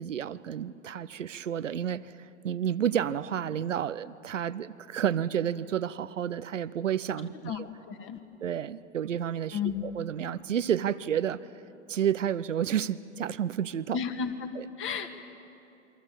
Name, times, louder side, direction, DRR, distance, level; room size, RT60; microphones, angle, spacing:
voice 1, 0.0-2.1 2.4-7.7 8.4-11.4 11.9-14.0 14.6-14.7, right 9 dB, 85° right, 16 dB, 0.8 m, -30 dB
voice 2, 7.9-8.2 9.5-9.8 13.9-14.5 14.8-15.1, left 7 dB, 35° left, 6 dB, 2.0 m, -32 dB
28.0 x 23.5 x 7.2 m, 2.8 s
hypercardioid pair, 100°, 37 cm